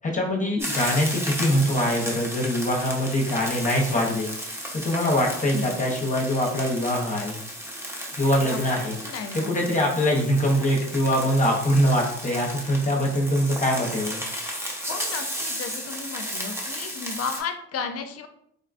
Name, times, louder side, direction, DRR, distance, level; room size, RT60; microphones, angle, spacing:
voice 1, 0.0-4.3 4.8-7.4 8.2-9.0 9.3-14.2, equal, 25° left, -1 dB, 0.8 m, -23 dB
sound 1, 0.6-17.4, equal, 10° right, 0.7 m, -34 dB
voice 2, 9.0-9.6 14.9-18.3, left 6 dB, 55° left, 7 dB, 0.5 m, -33 dB
3.8 x 2.2 x 2.5 m, 0.71 s
cardioid pair, 90°, 30 cm